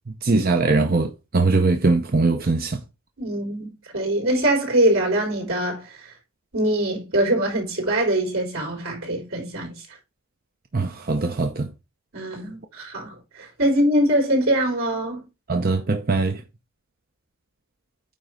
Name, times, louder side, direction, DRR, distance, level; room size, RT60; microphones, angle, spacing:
voice 1, 0.1-2.8 10.7-11.7 15.5-16.4, right 3 dB, 45° right, 0.7 m, -21 dB
voice 2, 3.2-6.1 6.5-10.0 12.1-15.2, right 1 dB, 85° right, 4.3 m, -23 dB
9.1 x 3.4 x 5.0 m
head